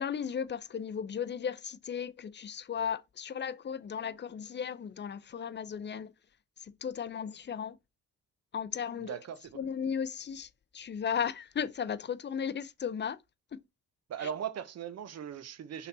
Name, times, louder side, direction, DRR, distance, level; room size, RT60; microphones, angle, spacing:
voice 1, 0.0-6.1 6.6-7.8 8.5-9.1 9.5-10.5 10.7-13.2 14.2-14.3, left 7 dB, 35° left, 0.6 m, -35 dB
voice 2, 9.0-9.6 14.1-15.9, right 8 dB, 55° right, 1.0 m, -39 dB
5.8 x 4.0 x 4.0 m
cardioid pair, 90°, 30 cm